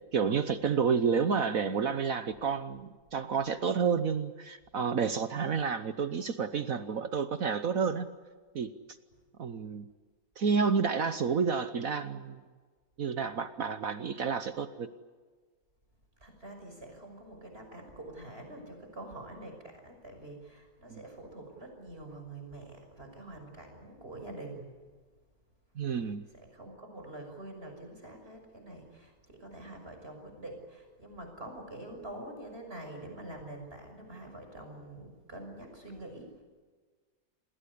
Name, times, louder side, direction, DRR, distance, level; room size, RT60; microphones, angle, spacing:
voice 1, 0.1-8.1 8.5-8.7 9.4-9.9 10.4-12.4 13.0-14.9 20.9-21.0 25.8-26.2, right 6 dB, 55° right, 11 dB, 1.3 m, -30 dB
voice 2, 16.2-24.7 25.9-26.0 26.3-36.4, right 1 dB, 35° right, 4 dB, 6.4 m, -46 dB
28.5 x 20.5 x 8.4 m, 1.5 s
omnidirectional pair, 1.8 m